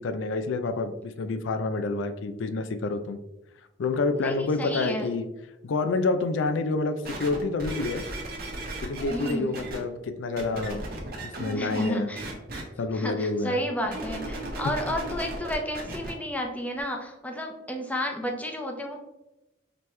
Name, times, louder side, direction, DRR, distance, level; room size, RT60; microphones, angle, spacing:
voice 1, 0.0-3.2 3.8-5.3 5.6-8.0 8.8-10.9 11.2-12.1 12.8-13.6, left 3 dB, 80° left, 9 dB, 0.4 m, -28 dB
voice 2, 4.2-5.1 9.1-9.6 11.5-12.2 12.9-19.0, equal, 10° left, 2 dB, 0.6 m, -32 dB
sound 1, 7.0-9.8 10.4-11.9 12.2-12.6 13.8-16.1 16.8-16.9, right 1 dB, 55° right, 1.1 m, -35 dB
5.2 x 3.0 x 3.2 m, 0.97 s
head